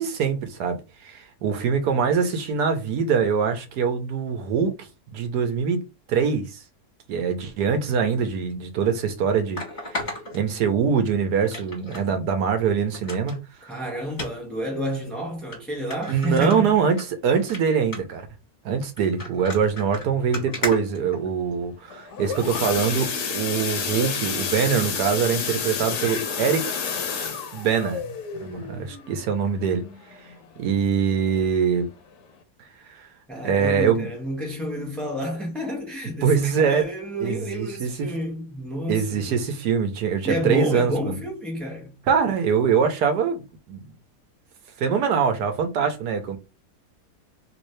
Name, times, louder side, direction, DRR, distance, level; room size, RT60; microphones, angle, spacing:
voice 1, 0.0-5.8 6.1-6.6 7.1-9.6 9.9-13.8 16.1-17.0 17.2-18.2 18.6-26.7 27.5-28.0 28.4-29.8 30.6-31.9 33.0-33.1 33.4-34.1 36.2-36.9 37.2-38.1 38.9-41.2 42.1-43.8 44.8-46.4, right 6 dB, 85° right, 1.3 m, -23 dB
sound 1, 8.5-8.6 9.6-11.0 11.5-12.1 12.4-12.5 12.9-13.4 14.1-14.3 15.0-15.1 15.5-15.6 15.9-17.0 17.4-17.6 17.9-18.2 19.0-21.6 22.4-22.6 23.2-23.3, left 2 dB, 45° left, 1.8 m, -34 dB
voice 2, 13.6-16.8 33.3-39.5 40.2-42.0, equal, ahead, 0.7 m, -29 dB
sound 2, 21.9-30.6 31.0-31.3 31.5-31.6 32.1-32.2, left 6 dB, 75° left, 1.3 m, -30 dB
3.3 x 2.7 x 3.1 m
omnidirectional pair, 1.7 m